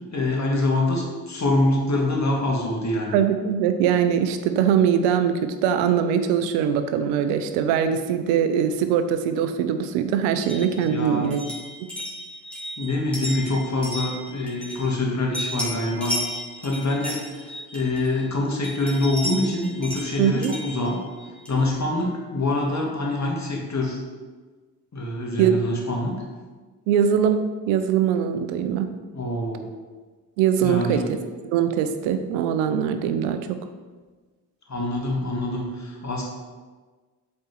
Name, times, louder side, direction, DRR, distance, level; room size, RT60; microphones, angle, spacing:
voice 1, 0.1-3.2 10.8-11.3 12.8-16.2 16.6-21.0 21.5-24.0 24.9-26.2 29.1-29.6 30.6-31.0 34.7-36.2, left 2 dB, 35° left, -1 dB, 2.2 m, -25 dB
voice 2, 3.1-11.4 20.2-20.5 25.4-25.6 26.9-27.4 27.7-28.9 30.4-31.0 31.5-33.6, right 8 dB, 85° right, 9 dB, 0.6 m, -22 dB
sound 1, 10.4-15.1 15.3-18.3 18.6-21.7, left 1 dB, ahead, 2.4 m, -34 dB
7.7 x 4.3 x 4.5 m, 1.4 s
hypercardioid pair, 40°, 47 cm